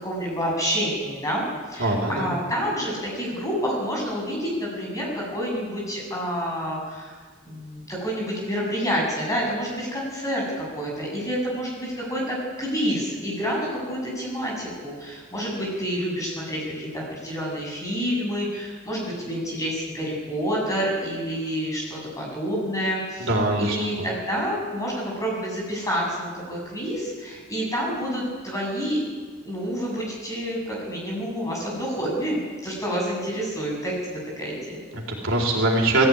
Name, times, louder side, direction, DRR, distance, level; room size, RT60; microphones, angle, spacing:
voice 1, 0.0-7.1 7.4-23.3 23.6-29.0 29.4-34.8, equal, 15° left, -3 dB, 7.7 m, -28 dB
voice 2, 1.8-2.3 23.3-24.1 34.9-36.1, right 2 dB, 60° right, -1 dB, 4.1 m, -23 dB
19.5 x 15.0 x 9.7 m, 1.5 s
head